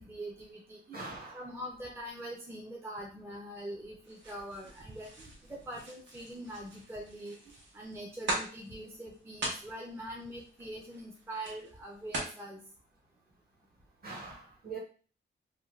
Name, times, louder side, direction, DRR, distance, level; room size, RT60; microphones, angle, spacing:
voice 1, 0.0-7.4 7.7-12.6, right 1 dB, 10° right, -2 dB, 0.4 m, -43 dB
voice 2, 0.9-1.4 14.0-14.8, right 4 dB, 50° right, -3 dB, 1.1 m, -42 dB
sound 1, 4.0-12.4, right 1 dB, 75° right, 0.9 m, -42 dB
2.5 x 2.2 x 3.0 m, 0.40 s
wide cardioid pair, 160°, 19 cm